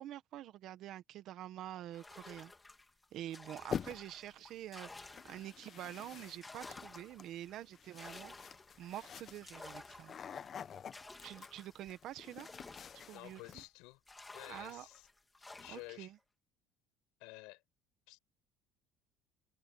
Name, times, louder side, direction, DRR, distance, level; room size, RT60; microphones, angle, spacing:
voice 1, 0.0-2.5 3.1-8.3 8.8-10.2 11.2-12.5 12.9-13.6 14.5-14.9 15.7-16.2, right 13 dB, 50° right, 1.4 m, -47 dB
sound 1, 1.9-5.8 6.2-13.7 14.1-16.0, left 3 dB, 10° left, 3.7 m, -54 dB
sound 2, 3.7-4.3 5.1-13.7, left 8 dB, 30° left, 1.1 m, -47 dB
voice 2, 13.1-14.0 14.3-15.1 15.6-16.1 17.2-17.6 18.1-18.2, left 25 dB, 80° left, 6.1 m, -51 dB
cardioid pair, 160°, 0 cm